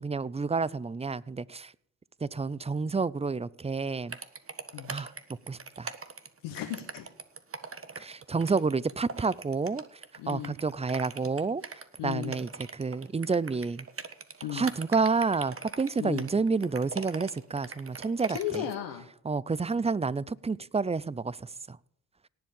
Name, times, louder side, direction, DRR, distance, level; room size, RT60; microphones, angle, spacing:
voice 1, 0.0-1.7 2.2-4.2 4.9-5.1 5.5-5.9 8.0-9.8 10.3-13.9 14.5-18.6 19.2-21.8, right 4 dB, 15° right, 0.5 m, -29 dB
sound 1, 4.1-18.7, right 5 dB, 35° right, 1.5 m, -41 dB
voice 2, 6.4-7.1 10.2-10.6 12.0-12.4 14.4-14.7 16.0-16.2 18.3-19.1, left 11 dB, 85° left, 1.3 m, -35 dB
18.0 x 7.6 x 5.4 m
hypercardioid pair, 40°, 39 cm